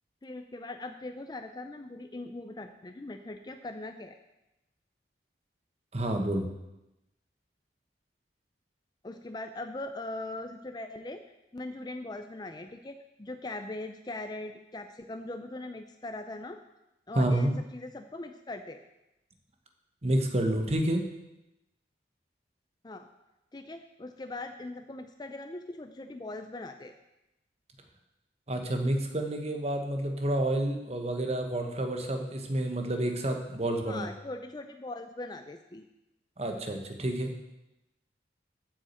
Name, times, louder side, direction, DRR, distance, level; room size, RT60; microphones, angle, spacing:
voice 1, 0.2-4.2 9.0-11.2 11.5-16.6 17.1-18.8 22.8-23.1 23.5-26.9 33.9-35.9, left 2 dB, 20° left, 7 dB, 0.4 m, -40 dB
voice 2, 5.9-6.5 17.1-17.5 20.0-21.1 28.5-34.1 36.4-37.3, right 1 dB, 35° right, 4 dB, 1.1 m, -29 dB
8.5 x 6.3 x 7.9 m, 0.94 s
head